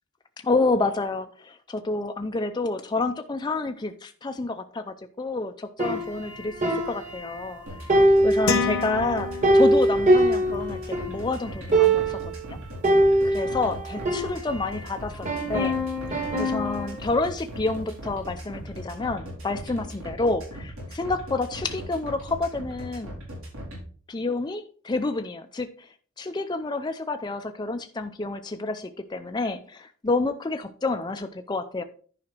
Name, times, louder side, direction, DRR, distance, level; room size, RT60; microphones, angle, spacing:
voice 1, 0.4-7.6 7.9-12.2 13.2-15.8 16.1-23.1 24.1-25.9 26.2-31.8, left 3 dB, 20° left, 6 dB, 0.5 m, -29 dB
sound 1, 5.8-7.6 7.9-11.2 11.5-11.6 11.7-12.3 12.8-14.8 15.3-16.9, right 1 dB, 35° right, 1.9 m, -23 dB
sound 2, 7.7-23.8, equal, 75° right, 4.4 m, -38 dB
sound 3, 8.5-10.0, left 5 dB, 70° left, 1.0 m, -28 dB
10.5 x 5.0 x 4.4 m, 0.43 s
head